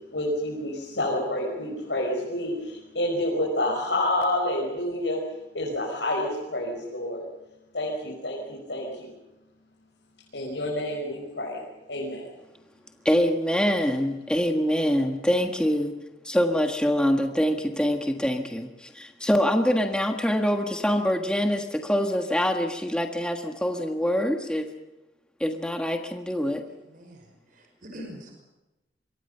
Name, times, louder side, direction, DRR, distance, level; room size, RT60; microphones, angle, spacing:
voice 1, 0.1-5.2 5.5-7.3 7.7-9.1 10.3-11.6 11.9-12.2, left 1 dB, 90° left, -3 dB, 5.8 m, -28 dB
voice 2, 13.0-15.9 16.2-24.7 25.4-26.6, equal, 5° left, 3 dB, 1.5 m, -25 dB
voice 3, 26.8-28.4, equal, 50° right, 2 dB, 5.5 m, -44 dB
26.0 x 23.5 x 5.7 m, 0.99 s
head